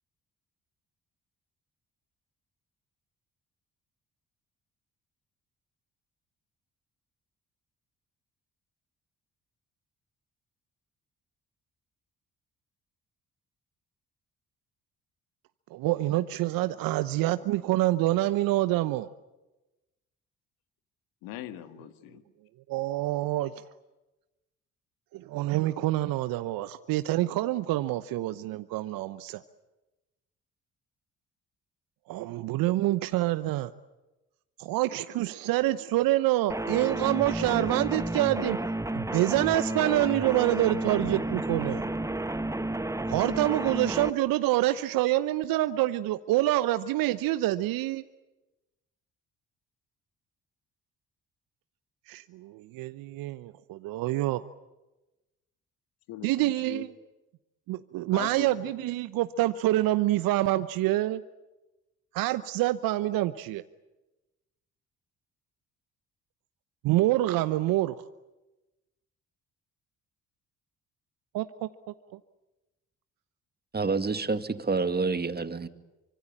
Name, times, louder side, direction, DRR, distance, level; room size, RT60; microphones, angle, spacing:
voice 1, 15.7-19.1 22.7-23.5 25.1-29.4 32.1-33.7 34.6-38.6 38.9-41.8 43.1-48.0 52.1-54.4 56.2-56.9 57.7-61.2 62.1-63.6 66.8-68.0 71.3-71.7, right 16 dB, 70° right, 0.9 m, -26 dB
voice 2, 21.2-22.2 56.1-56.8 58.1-59.1, left 12 dB, 75° left, 2.0 m, -42 dB
sound 1, 36.5-44.1, right 1 dB, 10° right, 1.4 m, -31 dB
voice 3, 73.7-75.7, right 4 dB, 25° right, 2.2 m, -28 dB
25.5 x 25.0 x 8.8 m
hypercardioid pair, 50°, 36 cm